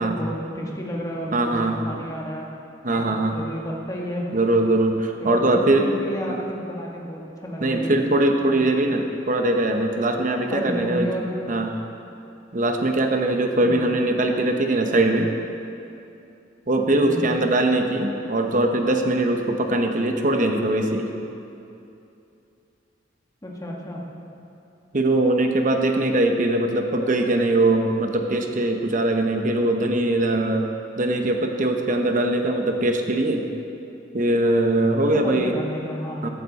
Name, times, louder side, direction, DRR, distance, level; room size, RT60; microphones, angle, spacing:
voice 1, 0.0-2.5 2.9-4.3 5.2-8.0 8.5-8.9 10.5-11.6 13.6-13.9 17.0-17.3 23.4-24.0 35.1-36.3, equal, 20° left, -2 dB, 1.8 m, -32 dB
voice 2, 1.3-1.8 2.8-3.3 4.3-5.9 7.6-11.1 11.5-11.7 12.5-15.3 16.7-21.1 24.9-30.7 31.0-33.5 34.1-35.5 36.2-36.3, right 2 dB, 45° right, 4 dB, 0.9 m, -21 dB
15.0 x 12.0 x 4.1 m, 2.7 s
head